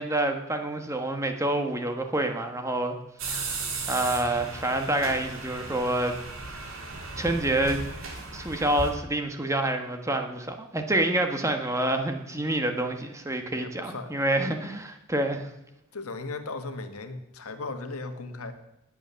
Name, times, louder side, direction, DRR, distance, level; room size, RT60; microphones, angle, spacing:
voice 1, 0.0-3.0 3.3-3.6 3.9-6.1 6.5-6.7 7.2-7.8 8.3-15.5, right 1 dB, 15° right, 5 dB, 1.3 m, -27 dB
sound 1, 3.2-8.9, right 3 dB, 65° right, 3.2 m, -36 dB
voice 2, 13.4-14.3 15.9-18.5, left 3 dB, 80° left, 8 dB, 1.6 m, -37 dB
19.5 x 7.8 x 6.9 m, 0.89 s
head